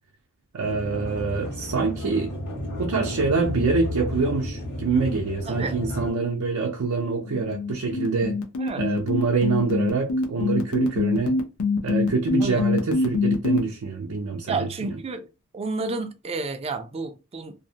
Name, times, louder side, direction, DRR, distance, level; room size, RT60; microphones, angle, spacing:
voice 1, 0.5-2.3 2.8-8.4 8.8-11.4 11.8-14.9, right 4 dB, 90° right, 0.5 m, -25 dB
sound 1, 0.6-6.1, left 1 dB, 55° left, 1.3 m, -32 dB
voice 2, 5.5-5.8 8.6-8.8 12.4-12.7 14.5-15.3 15.5-17.5, right 3 dB, 30° right, 0.4 m, -30 dB
sound 2, 7.3-13.6, left 3 dB, 85° left, 0.6 m, -24 dB
2.6 x 2.0 x 2.7 m
head